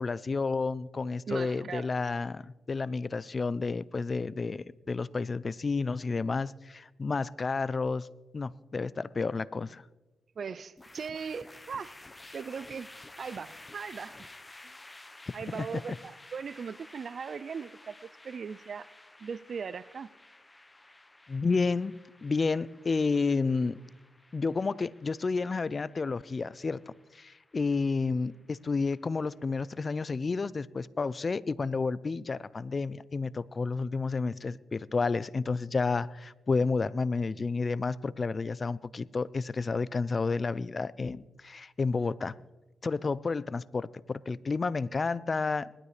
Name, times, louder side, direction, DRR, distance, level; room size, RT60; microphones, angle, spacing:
voice 1, 0.0-8.1 8.3-9.8 15.5-15.7 21.3-21.9 22.2-23.8 24.3-26.8 27.1-42.3 42.8-45.7, left 4 dB, 40° left, 20 dB, 0.5 m, -31 dB
voice 2, 1.3-1.9 10.4-12.0 12.3-12.9 13.2-14.2 14.6-14.7 15.3-18.9 19.2-20.1, right 6 dB, 55° right, 17 dB, 0.4 m, -39 dB
sound 1, 10.8-30.0, left 2 dB, 20° left, 0.9 m, -53 dB
20.0 x 12.5 x 3.3 m, 1.1 s
cardioid pair, 65°, 0 cm